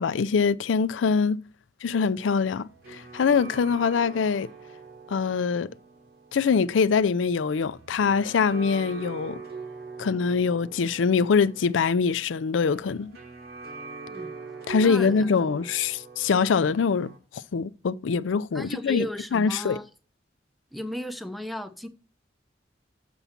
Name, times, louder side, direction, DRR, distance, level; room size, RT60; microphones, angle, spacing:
voice 1, 0.0-1.4 1.8-4.5 5.1-5.7 6.3-9.4 10.0-13.1 14.7-19.1 19.3-19.8, left 5 dB, 85° left, 0.4 m, -24 dB
sound 1, 2.0-17.2, right 4 dB, 55° right, 1.1 m, -43 dB
voice 2, 14.8-15.5 18.5-19.9 20.7-21.9, equal, ahead, 0.6 m, -35 dB
7.0 x 6.9 x 4.3 m
head